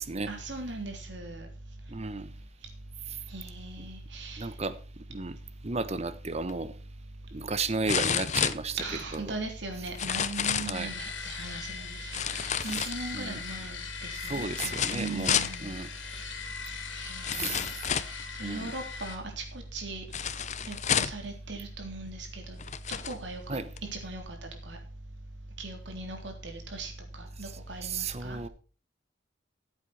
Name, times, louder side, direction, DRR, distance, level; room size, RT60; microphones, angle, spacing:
voice 1, 0.3-1.5 3.3-4.5 8.8-12.0 12.3-15.8 16.9-19.4 19.7-20.0 20.7-22.6 22.9-23.6 23.9-24.4 24.7-24.8 25.6-26.9 27.2-28.4, right 2 dB, 70° right, 3.5 m, -39 dB
voice 2, 1.9-2.3 3.1-3.2 3.8-3.9 4.4-4.8 5.1-5.4 5.6-6.7 7.3-8.8 9.1-9.4 10.7-11.0 13.1-13.4 14.2-15.9 17.4-17.6 18.4-18.7 23.5-23.7 27.4-27.5 27.8-28.5, right 3 dB, 35° right, 1.0 m, -34 dB
sound 1, 6.5-6.6 7.9-9.2 9.9-10.8 12.1-13.3 14.5-15.6 16.6-16.7 17.2-18.2 20.1-21.3 22.1-22.2 22.6-23.2 23.8-23.9, left 8 dB, 40° left, 0.7 m, -30 dB
sound 2, 10.7-19.2, left 6 dB, 80° left, 2.8 m, -40 dB
15.0 x 8.1 x 4.2 m
head